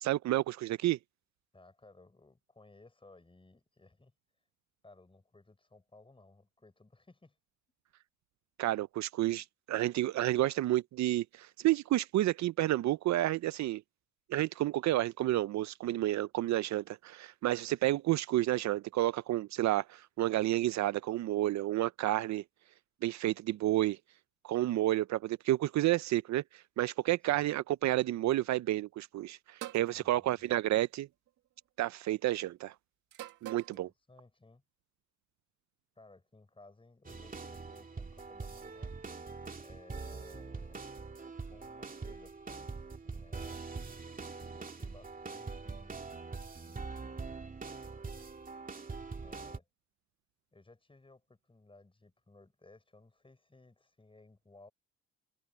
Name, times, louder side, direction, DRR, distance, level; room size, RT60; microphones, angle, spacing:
voice 1, 0.0-1.0 8.6-13.8 14.3-22.4 23.0-24.0 24.4-31.1 31.8-32.7 33.4-33.9, right 15 dB, 65° right, 0.5 m, -30 dB
voice 2, 1.5-4.1 4.8-7.4 27.3-27.5 29.9-30.6 33.7-34.6 35.9-39.0 39.6-40.8 41.5-43.6 44.4-46.0 46.6-47.4 49.2-49.7 50.5-54.7, left 2 dB, 15° left, 6.5 m, -59 dB
sound 1, 29.6-29.9 31.1-31.5 33.1-33.8, right 13 dB, 85° right, 1.9 m, -44 dB
sound 2, 37.0-49.6, right 4 dB, 30° right, 2.6 m, -43 dB
cardioid pair, 90°, 30 cm